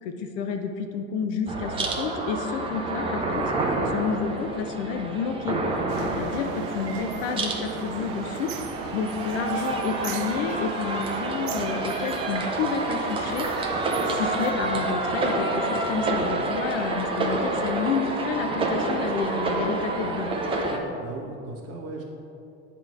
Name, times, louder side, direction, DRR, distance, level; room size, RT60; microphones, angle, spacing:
voice 1, 0.0-3.4 3.9-5.6 6.0-8.5 8.9-13.5 14.1-20.3, left 6 dB, 60° left, 5 dB, 0.7 m, -30 dB
sound 1, 1.5-20.8, right 2 dB, 15° right, 0.5 m, -28 dB
sound 2, 5.9-14.5, right 7 dB, 85° right, 0.6 m, -38 dB
voice 2, 20.7-22.0, right 3 dB, 35° right, -1 dB, 1.3 m, -38 dB
8.4 x 3.2 x 5.5 m, 2.7 s
supercardioid pair, 125°, 43 cm